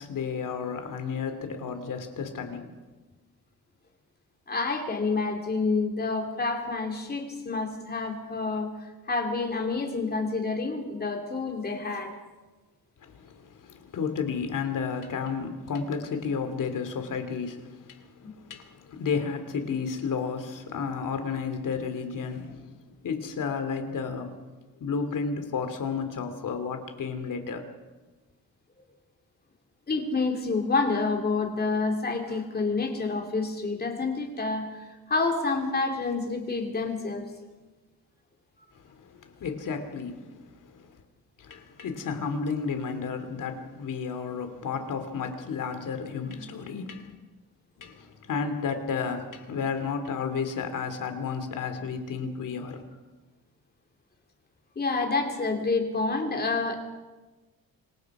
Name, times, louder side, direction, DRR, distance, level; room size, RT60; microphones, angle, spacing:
voice 1, 0.0-2.7 13.0-22.6 23.0-24.4 24.8-27.6 38.7-41.0 41.4-47.1 47.8-52.9, left 5 dB, 60° left, 2.8 m, -32 dB
voice 2, 4.5-12.2 18.2-18.3 29.9-37.3 54.7-56.8, left 3 dB, 25° left, 3.1 m, -28 dB
26.5 x 23.0 x 4.9 m
cardioid pair, 150°, 36 cm